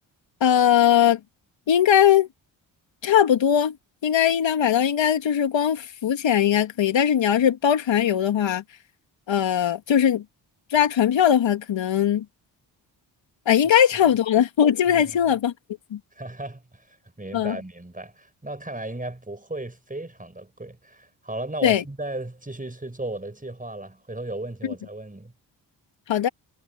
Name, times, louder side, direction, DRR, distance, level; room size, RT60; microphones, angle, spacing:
voice 1, 0.4-1.2 1.7-2.3 3.0-3.8 4.0-8.6 9.3-10.2 10.7-12.2 13.5-15.5 15.9-16.0 17.3-17.6 21.6-21.8 26.1-26.3, left 9 dB, 65° left, 2.6 m, -20 dB
voice 2, 16.1-16.8 17.2-25.3, right 2 dB, 15° right, 6.5 m, -35 dB
hypercardioid pair, 40°, 49 cm